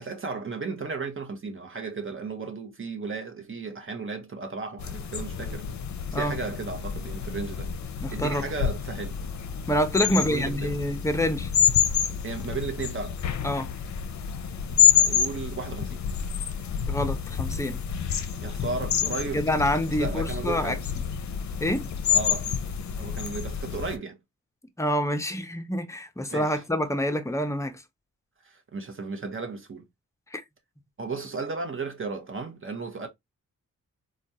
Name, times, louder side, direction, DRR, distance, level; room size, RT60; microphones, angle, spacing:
voice 1, 0.0-5.7 6.1-7.7 8.1-9.2 10.0-10.8 12.2-13.2 14.9-16.0 18.4-19.4 20.0-20.8 22.1-22.5 23.0-24.2 26.3-26.6 28.4-29.8 31.0-33.1, right 4 dB, 40° right, 0.9 m, -34 dB
sound 1, 4.8-24.0, left 8 dB, 60° left, 0.6 m, -28 dB
voice 2, 8.0-8.4 9.7-11.5 13.4-13.7 16.9-17.8 19.3-20.8 21.6-21.9 24.8-27.8 30.3-30.4, equal, 10° left, 0.6 m, -27 dB
3.4 x 2.3 x 2.7 m
cardioid pair, 75°, 32 cm